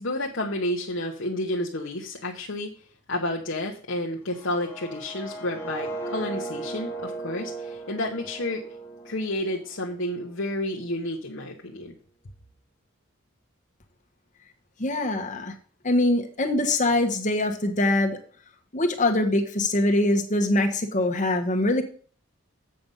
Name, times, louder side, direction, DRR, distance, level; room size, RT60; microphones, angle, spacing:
voice 1, 0.0-8.7 9.0-11.9, left 1 dB, 65° left, 0 dB, 1.0 m, -30 dB
sound 1, 4.2-10.2, right 3 dB, 10° left, 1.3 m, -37 dB
voice 2, 14.8-15.5 15.8-18.2 18.7-21.8, left 1 dB, 35° left, 3 dB, 1.3 m, -23 dB
7.8 x 5.4 x 5.5 m, 0.43 s
head